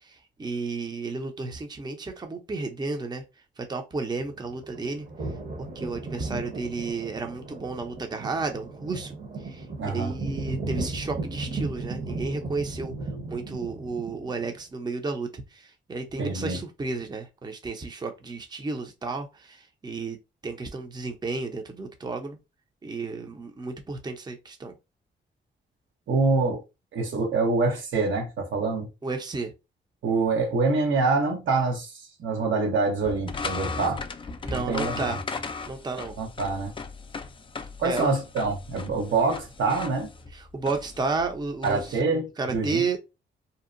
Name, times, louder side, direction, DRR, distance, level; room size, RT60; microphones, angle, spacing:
voice 1, 0.4-3.2 3.7-5.1 5.8-9.1 9.4-12.9 13.3-20.2 20.4-22.4 22.8-24.7 29.0-29.5 34.4-35.2 35.7-36.2 37.8-38.1 40.3-42.0 42.4-43.0, right 3 dB, 20° right, 0.6 m, -32 dB
sound 1, 4.2-14.6, right 3 dB, 45° right, 0.9 m, -36 dB
voice 2, 9.8-10.1 16.2-16.6 26.1-26.6 26.9-28.9 30.0-34.0 34.5-35.0 36.2-36.7 37.8-40.1 41.6-42.8, right 3 dB, 80° right, 0.9 m, -25 dB
sound 2, 33.0-41.9, left 4 dB, 25° left, 0.3 m, -37 dB
2.7 x 2.1 x 2.5 m
cardioid pair, 70°, 20 cm